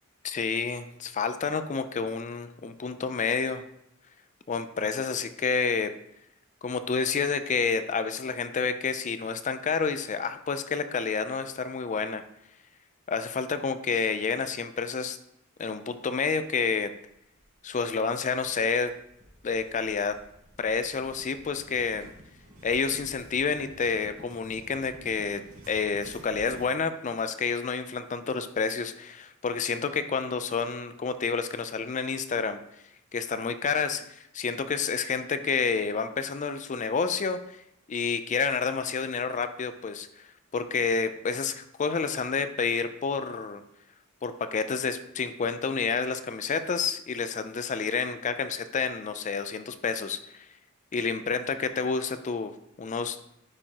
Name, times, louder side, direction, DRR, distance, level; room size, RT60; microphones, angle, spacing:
voice 1, 0.2-3.6 4.5-5.9 6.6-12.2 13.1-15.2 15.6-16.9 17.6-18.9 19.4-20.2 20.6-22.1 22.6-32.6 33.1-37.6 37.9-40.3 40.5-43.6 44.2-50.5 50.9-52.5 52.8-53.2, left 5 dB, 35° left, 11 dB, 0.4 m, -29 dB
sound 1, 17.1-26.7, equal, 75° right, 2.8 m, -52 dB
9.7 x 4.5 x 2.9 m, 0.79 s
head